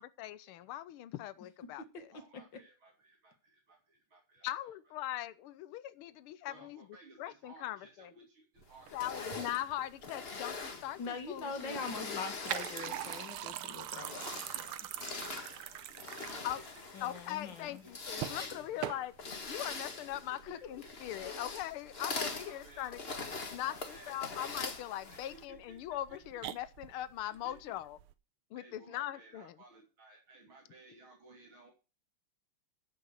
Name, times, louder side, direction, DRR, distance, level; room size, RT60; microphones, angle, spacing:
voice 1, 0.0-2.2 4.4-6.9 7.2-8.1 8.9-12.3 16.4-16.6 17.0-19.1 19.5-23.0 23.5-28.0 28.5-29.5, left 13 dB, 85° left, 1.6 m, -41 dB
voice 2, 2.1-4.7 6.5-9.3 9.7-9.8 11.6-11.8 12.1-12.9 15.9-16.5 17.8-17.9 19.5-19.8 20.3-20.9 22.3-22.9 23.7-24.2 25.3-25.8 26.1-26.2 27.3-27.8 28.6-31.7, right 3 dB, 70° right, 3.7 m, -58 dB
sound 1, 8.6-28.1, right 12 dB, 85° right, 1.7 m, -45 dB
sound 2, 8.9-13.5 13.9-25.4, left 4 dB, 30° left, 1.6 m, -43 dB
voice 3, 11.0-14.8 16.9-17.9 21.2-21.4, left 4 dB, 60° left, 2.4 m, -43 dB
14.0 x 6.0 x 6.5 m
omnidirectional pair, 2.3 m